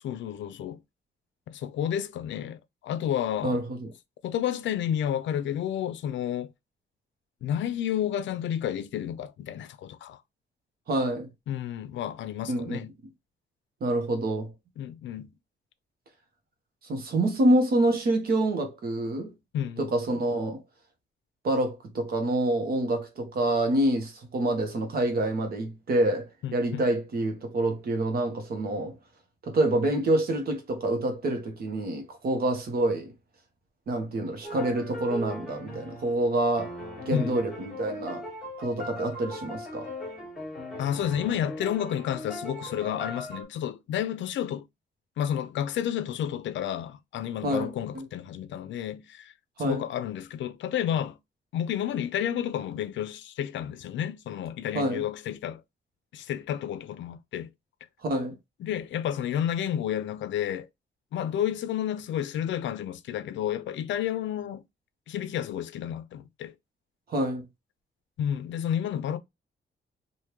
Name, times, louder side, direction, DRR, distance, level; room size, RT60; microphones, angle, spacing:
voice 1, 0.0-0.8 1.5-3.6 4.2-6.5 7.4-10.2 11.5-12.9 14.8-15.3 19.5-19.9 26.4-26.9 37.1-37.4 40.8-44.7 45.2-49.3 49.6-51.2 51.5-55.6 56.1-57.5 58.6-60.7 61.1-64.6 65.1-66.5 68.2-69.2, left 10 dB, 90° left, 0.4 m, -31 dB
voice 2, 3.4-3.9 10.9-11.3 12.5-12.8 13.8-14.5 16.8-19.3 19.8-20.6 21.4-28.9 29.4-33.1 33.9-36.7 37.1-38.2 38.6-39.9 47.4-47.7 47.9-48.0 49.6-49.8 54.7-55.0 58.0-58.3 67.1-67.4, right 1 dB, 55° right, 1.2 m, -27 dB
sound 1, 34.4-43.4, left 1 dB, 5° right, 1.8 m, -39 dB
3.5 x 2.6 x 3.0 m
wide cardioid pair, 175°, 19 cm